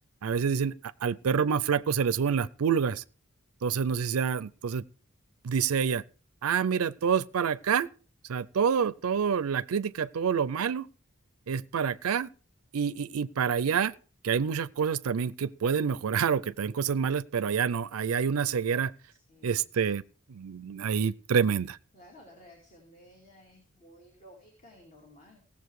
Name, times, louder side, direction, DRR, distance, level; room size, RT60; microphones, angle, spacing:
voice 1, 0.2-3.0 3.6-4.8 5.4-6.0 6.4-7.9 8.3-10.9 11.5-12.3 12.7-13.9 14.2-18.9 19.4-20.0 20.3-21.8, right 6 dB, 90° right, 0.5 m, -27 dB
voice 2, 19.1-19.7 21.9-25.4, equal, 35° left, 2.7 m, -55 dB
17.0 x 7.2 x 4.7 m
head